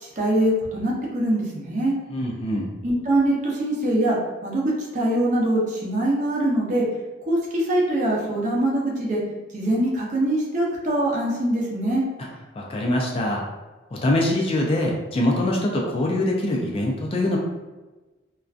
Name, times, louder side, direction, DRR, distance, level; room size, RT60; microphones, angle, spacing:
voice 1, 0.0-1.9 2.8-6.9 7.3-9.2 9.5-12.1, right 1 dB, 40° right, -4 dB, 0.6 m, -23 dB
voice 2, 2.1-2.7 12.6-13.4 13.9-17.4, left 1 dB, 30° left, -1 dB, 0.3 m, -23 dB
2.5 x 2.2 x 2.4 m, 1.2 s
head